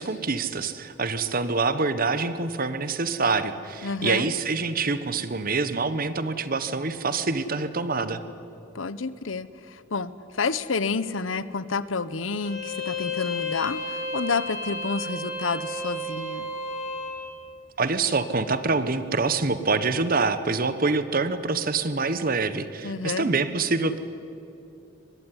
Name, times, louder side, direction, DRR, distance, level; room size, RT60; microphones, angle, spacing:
voice 1, 0.0-8.2 17.8-24.0, right 4 dB, 45° right, 12 dB, 1.2 m, -26 dB
voice 2, 3.8-4.3 8.7-16.5 22.8-23.3, left 4 dB, 90° left, 16 dB, 0.9 m, -29 dB
Bowed string instrument, 12.4-17.2, left 2 dB, 50° left, 7.4 m, -32 dB
23.0 x 20.5 x 9.9 m, 2.9 s
head